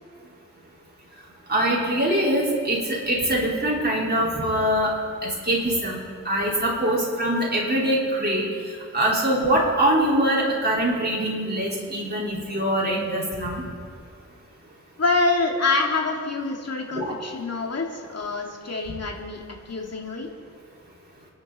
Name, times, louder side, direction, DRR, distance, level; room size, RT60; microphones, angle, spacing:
voice 1, 1.5-4.9 5.2-6.0 6.2-8.4 8.9-13.6 16.9-17.1, right 1 dB, 35° right, -5 dB, 5.1 m, -23 dB
voice 2, 15.0-20.3, left 3 dB, 60° left, 1 dB, 2.6 m, -26 dB
28.5 x 10.5 x 4.4 m, 2.1 s
wide cardioid pair, 75°, 30 cm